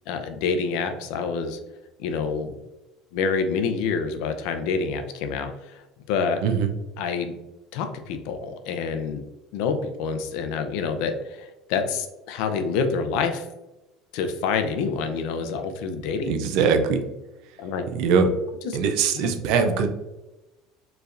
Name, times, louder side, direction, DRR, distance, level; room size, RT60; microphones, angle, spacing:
voice 1, 0.1-1.6 2.0-2.5 3.1-6.4 7.0-7.3 7.7-9.2 9.5-13.5 14.1-16.3 17.6-17.8 18.6-18.8, left 5 dB, 65° left, 7 dB, 0.5 m, -27 dB
voice 2, 16.3-17.0 17.9-18.3 18.7-19.9, right 6 dB, 60° right, 6 dB, 0.5 m, -21 dB
4.7 x 3.2 x 2.5 m, 1.0 s
cardioid pair, 160°, 0 cm